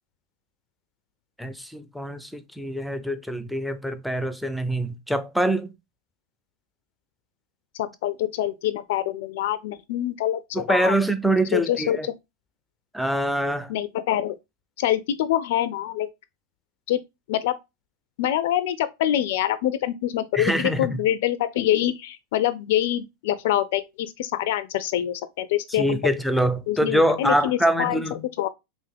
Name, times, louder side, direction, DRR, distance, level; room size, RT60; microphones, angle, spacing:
voice 1, 1.4-5.7 10.5-12.1 12.9-13.7 20.3-21.0 25.7-28.2, right 1 dB, ahead, 0.5 m, -24 dB
voice 2, 7.7-10.9 11.5-12.1 13.7-14.4 14.8-16.1 16.9-17.0 17.3-17.6 18.2-26.1 26.7-28.0 28.4-28.5, left 12 dB, 65° left, 0.3 m, -25 dB
3.4 x 2.6 x 3.4 m
hypercardioid pair, 90°, 0 cm